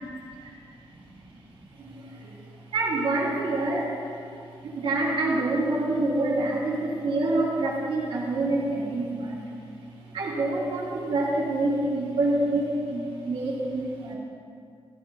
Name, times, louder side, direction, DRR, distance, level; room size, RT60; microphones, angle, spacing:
voice 1, 2.7-3.9 4.7-9.1 10.1-14.1, right 2 dB, 85° right, -6 dB, 3.0 m, -26 dB
30.0 x 13.5 x 2.8 m, 2.4 s
cardioid pair, 90°, 9 cm